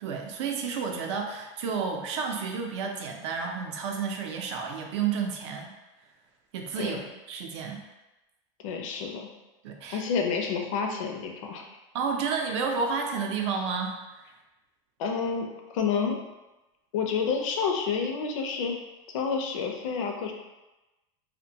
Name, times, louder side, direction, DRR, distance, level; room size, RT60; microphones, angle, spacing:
voice 1, 0.0-5.7 6.5-7.0 7.3-7.8 9.6-10.0 11.9-14.3, right 5 dB, 65° right, 2 dB, 0.5 m, -31 dB
voice 2, 8.6-9.3 9.9-11.8 15.0-16.2 16.9-18.8 19.1-20.3, left 5 dB, 85° left, 3 dB, 0.5 m, -29 dB
2.5 x 2.1 x 2.7 m, 1.0 s
supercardioid pair, 175°, 16 cm